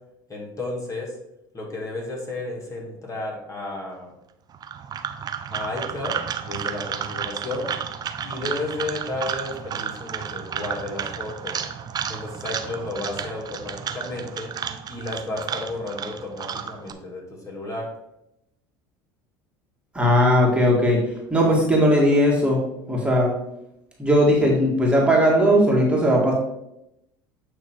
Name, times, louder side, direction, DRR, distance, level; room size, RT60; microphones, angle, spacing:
voice 1, 0.3-1.1 1.5-4.1 5.5-7.7 8.2-11.6 12.1-14.5 14.9-17.9, left 2 dB, 30° left, -2 dB, 2.2 m, -32 dB
sound 1, 4.5-16.9, right 8 dB, 35° right, 0.7 m, -32 dB
voice 2, 19.9-21.0 21.3-22.6 22.9-23.3 24.0-26.3, equal, 10° right, -3 dB, 2.1 m, -18 dB
8.9 x 3.1 x 4.6 m, 0.84 s
hypercardioid pair, 85°, 11 cm